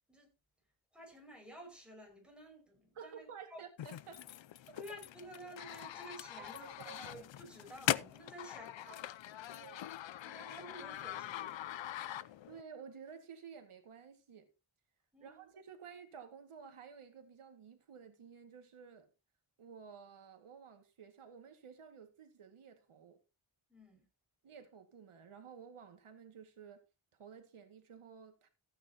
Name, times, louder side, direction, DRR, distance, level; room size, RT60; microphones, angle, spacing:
voice 1, 0.9-3.6 4.8-9.0 9.4-9.6 10.2-11.6 15.1-15.5 23.7-24.1, equal, ahead, 5.8 m, -52 dB
voice 2, 2.9-4.3 4.7-4.8 6.4-7.0 8.9-9.0 9.5-9.9 12.5-14.5 15.2-19.1 19.6-23.2 24.4-26.8 27.2-28.5, right 6 dB, 85° right, 2.1 m, -53 dB
sound 1, 3.8-12.6, left 12 dB, 65° left, 0.6 m, -42 dB
15.0 x 9.2 x 2.9 m
wide cardioid pair, 130°, 49 cm